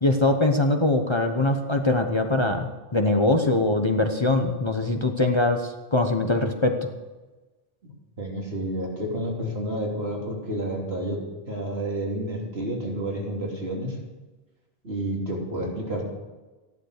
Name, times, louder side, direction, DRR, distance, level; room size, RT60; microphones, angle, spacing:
voice 1, 0.0-6.9, left 2 dB, 30° left, 4 dB, 1.0 m, -22 dB
voice 2, 7.8-14.0 14.8-16.1, right 1 dB, 75° right, -1 dB, 3.3 m, -30 dB
14.5 x 11.0 x 6.6 m, 1.2 s
omnidirectional pair, 1.0 m